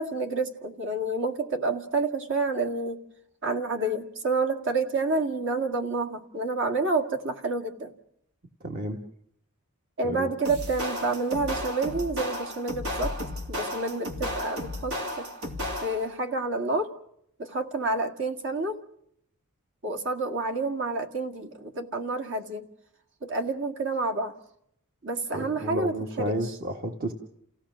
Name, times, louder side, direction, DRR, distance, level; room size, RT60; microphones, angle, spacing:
voice 1, 0.0-3.0 3.4-7.9 10.0-13.2 13.5-15.3 15.8-16.9 17.4-18.8 19.8-22.7 23.2-24.4 25.0-26.5, right 3 dB, 55° right, 5 dB, 2.0 m, -29 dB
voice 2, 8.6-9.0 10.0-10.3 25.3-27.1, equal, 40° right, 3 dB, 1.4 m, -31 dB
sound 1, 10.4-16.2, left 1 dB, 80° right, 3.1 m, -33 dB
29.0 x 16.5 x 6.3 m, 0.73 s
head